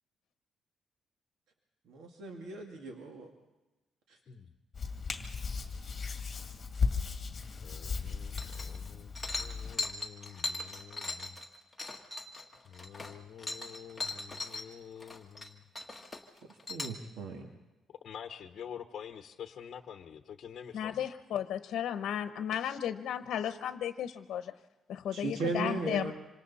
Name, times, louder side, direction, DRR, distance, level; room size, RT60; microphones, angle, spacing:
voice 1, 1.9-3.3 4.1-4.2 16.7-17.5 25.1-26.1, right 3 dB, 80° right, 2 dB, 2.2 m, -37 dB
Hands, 4.7-9.8, left 5 dB, 25° left, 2.3 m, -36 dB
voice 2, 7.6-9.1 9.4-11.4 12.6-15.6 17.9-21.0, left 8 dB, 40° left, 6 dB, 1.1 m, -47 dB
sound 1, 8.4-8.9 9.1-14.6 15.0-15.5 15.7-17.0, left 3 dB, 10° left, 1.7 m, -39 dB
voice 3, 20.7-24.5 24.9-26.1, left 9 dB, 65° left, 9 dB, 0.9 m, -34 dB
26.5 x 26.0 x 4.2 m, 1.1 s
cardioid pair, 170°, 0 cm